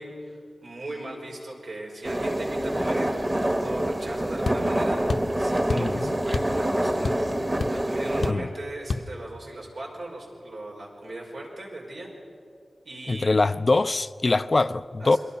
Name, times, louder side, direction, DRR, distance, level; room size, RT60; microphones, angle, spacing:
voice 1, 0.0-12.1 12.8-13.3 15.0-15.2, right 1 dB, 85° right, 5.5 m, -39 dB
sound 1, 2.0-8.3, right 1 dB, 20° right, 1.3 m, -26 dB
sound 2, 4.4-4.6 5.1-5.3 5.7-5.9 6.3-6.6 6.8-7.3 7.6-7.7 8.2-8.5 8.9-9.1, left 4 dB, 70° left, 0.9 m, -28 dB
voice 2, 5.8-6.1 8.3-8.5 13.1-15.2, left 3 dB, 40° left, 0.5 m, -23 dB
29.0 x 22.0 x 5.7 m
wide cardioid pair, 105°, 0 cm